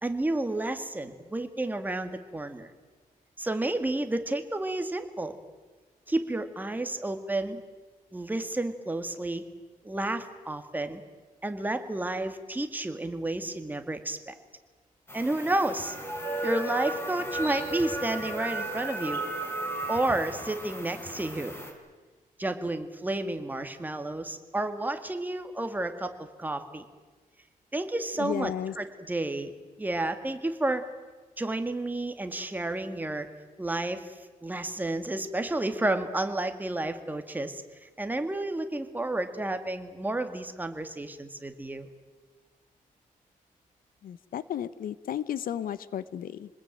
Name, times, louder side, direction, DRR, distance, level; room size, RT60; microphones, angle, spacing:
voice 1, 0.0-2.7 3.4-5.4 6.1-7.6 8.1-9.4 9.8-11.0 11.4-14.3 15.1-15.9 16.4-19.2 19.9-21.6 22.4-26.8 27.7-29.5 29.8-30.8 31.4-33.3 33.6-41.9, right 2 dB, 10° right, 7 dB, 2.0 m, -31 dB
sound 1, 15.1-21.7, right 1 dB, 15° left, 4.7 m, -34 dB
voice 2, 28.2-28.7 44.0-46.5, left 10 dB, 75° left, 17 dB, 0.9 m, -33 dB
26.5 x 20.5 x 9.0 m, 1.3 s
wide cardioid pair, 140°, 15 cm